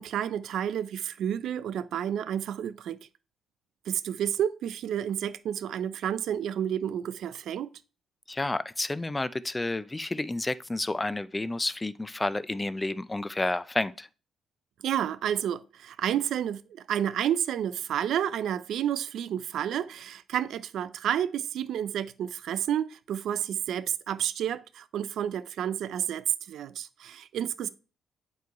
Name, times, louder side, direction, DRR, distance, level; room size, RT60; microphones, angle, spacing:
voice 1, 0.0-3.0 3.9-7.7 14.8-27.7, right 10 dB, 75° right, 0.3 m, -30 dB
voice 2, 8.3-14.1, left 2 dB, 15° left, 0.3 m, -30 dB
8.2 x 3.1 x 4.6 m
cardioid pair, 90°, 0 cm